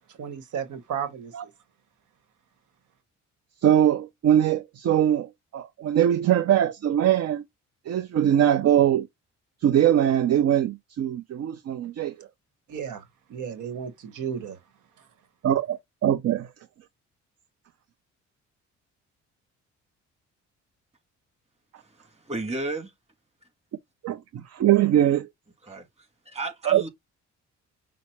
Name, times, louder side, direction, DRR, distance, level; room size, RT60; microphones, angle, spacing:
voice 1, 0.1-1.5 12.7-13.0 13.3-14.6, right 8 dB, 80° right, 1.2 m, -34 dB
voice 2, 3.6-7.4 7.9-9.1 9.6-12.3 15.4-16.5 24.0-25.3 26.7-26.8, right 10 dB, 55° right, 0.6 m, -22 dB
voice 3, 21.8-22.9 25.6-25.9 26.3-26.9, right 2 dB, 20° right, 2.0 m, -33 dB
6.0 x 2.0 x 4.3 m
cardioid pair, 90°, 30 cm